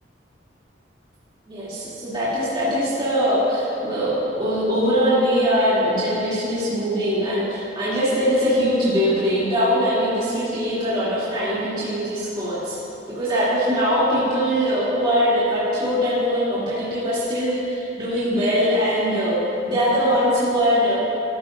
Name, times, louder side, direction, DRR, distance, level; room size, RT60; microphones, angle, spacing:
voice 1, 1.5-12.8 13.1-19.4 19.7-21.0, equal, 25° right, -12 dB, 3.0 m, -21 dB
14.5 x 13.5 x 2.7 m, 2.8 s
head